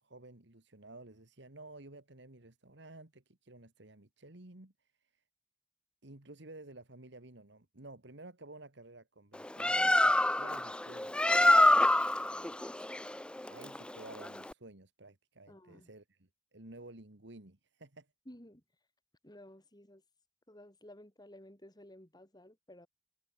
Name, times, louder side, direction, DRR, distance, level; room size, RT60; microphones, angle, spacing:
voice 1, 0.0-5.2 6.0-12.7 13.5-18.1, right 2 dB, 65° right, 2.2 m, -53 dB
Bird, 9.3-14.5, left 1 dB, 5° left, 0.4 m, -27 dB
voice 2, 15.5-15.9 18.3-18.6 19.2-20.0 20.5-22.9, left 1 dB, 20° left, 4.7 m, -54 dB
head